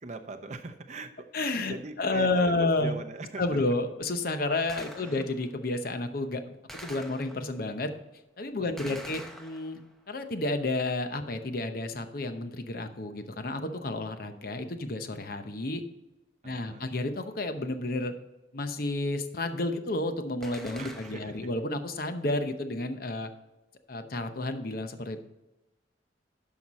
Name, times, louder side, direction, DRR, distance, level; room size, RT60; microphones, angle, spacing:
voice 1, 0.0-1.3 1.6-3.6 5.0-5.3 8.6-9.2 16.4-16.9 20.8-21.5, right 3 dB, 40° right, 6 dB, 0.8 m, -41 dB
voice 2, 1.3-3.0 3.4-7.9 8.4-9.8 10.1-15.8 16.4-18.1 18.5-23.3 23.9-25.2, left 2 dB, 55° left, 8 dB, 0.8 m, -31 dB
Gunshot gunfire, 4.7-5.5 6.7-7.7 8.8-10.0 20.4-21.5, equal, ahead, 0.8 m, -45 dB
11.0 x 5.8 x 4.2 m, 1.0 s
head